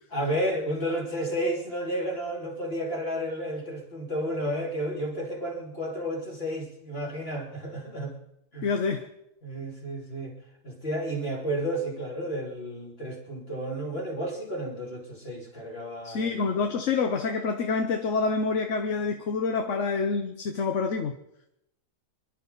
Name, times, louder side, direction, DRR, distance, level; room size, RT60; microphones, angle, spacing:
voice 1, 0.1-8.1 8.5-8.7 9.4-10.4 10.6-16.5, equal, 35° left, -1 dB, 3.2 m, -32 dB
voice 2, 8.6-9.1 16.0-21.2, left 4 dB, 55° left, 5 dB, 1.2 m, -27 dB
26.0 x 11.5 x 4.0 m, 0.81 s
omnidirectional pair, 1.7 m